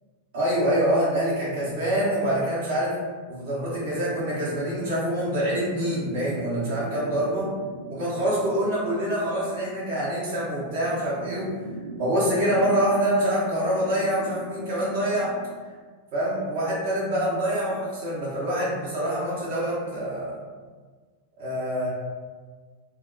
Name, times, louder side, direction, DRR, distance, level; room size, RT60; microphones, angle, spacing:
voice 1, 0.3-2.9 3.3-7.5 7.9-11.5 12.0-15.3 16.1-20.4 21.4-21.9, right 1 dB, 50° right, -8 dB, 1.1 m, -25 dB
sound 1, 3.3-15.6, right 2 dB, 70° right, 0.4 m, -40 dB
2.7 x 2.1 x 2.5 m, 1.5 s
figure-of-eight pair, 90°, 0 cm